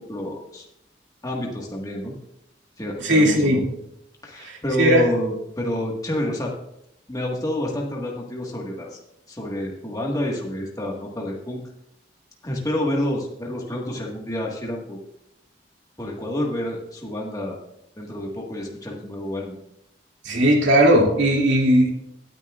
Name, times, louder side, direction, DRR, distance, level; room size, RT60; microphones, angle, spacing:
voice 1, 0.1-0.7 1.2-2.1 2.8-3.6 4.2-6.5 7.1-9.0 9.3-11.6 12.4-15.0 16.0-17.6 18.0-19.6, left 1 dB, 20° left, -1 dB, 1.5 m, -28 dB
voice 2, 3.0-3.6 4.4-5.1 20.2-21.9, equal, 85° right, 0 dB, 2.4 m, -18 dB
17.5 x 9.7 x 2.4 m, 0.79 s
head